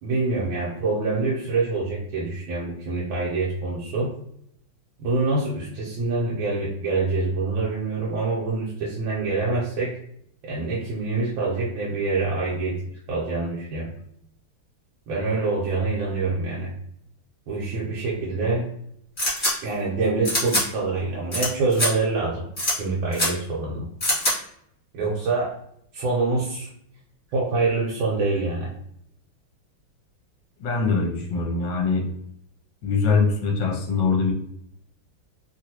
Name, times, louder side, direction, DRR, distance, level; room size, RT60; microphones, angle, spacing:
voice 1, 0.0-4.1 5.0-9.9 10.4-12.8 13.1-13.9 15.1-16.7 17.5-18.7 19.6-22.5 22.7-23.9 24.9-25.5 25.9-26.7 27.3-28.7, right 3 dB, 75° right, -5 dB, 1.4 m, -25 dB
sound 1, 19.2-19.5 20.2-20.6 21.3-21.5 21.7-21.9 22.6-22.7 23.1-23.3 24.0-24.3, left 1 dB, 30° left, 1.4 m, -23 dB
voice 2, 30.6-32.0 32.8-34.3, left 4 dB, 70° left, 1 dB, 1.3 m, -22 dB
3.2 x 2.6 x 2.8 m, 0.72 s
omnidirectional pair, 2.2 m